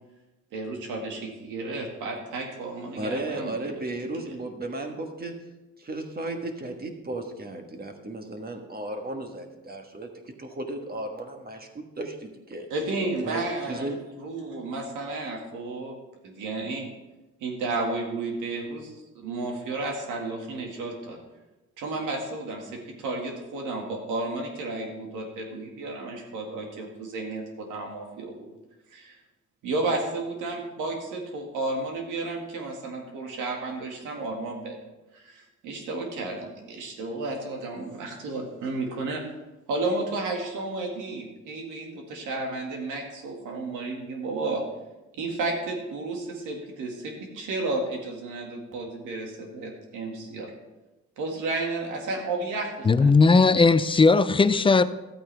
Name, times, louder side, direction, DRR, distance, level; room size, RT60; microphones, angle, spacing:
voice 1, 0.5-4.1 12.7-13.9 14.2-15.9 16.2-16.9 17.4-21.2 21.8-28.5 28.9-29.2 29.6-34.8 35.1-39.2 39.7-44.6 45.1-50.5 51.2-53.1, right 2 dB, 90° right, 2.1 m, -32 dB
voice 2, 2.9-5.4 5.8-12.7 13.2-14.0, right 2 dB, 30° right, 1.4 m, -35 dB
voice 3, 52.8-54.8, left 4 dB, 15° left, 0.4 m, -18 dB
12.5 x 8.6 x 3.4 m
cardioid pair, 90°, 30 cm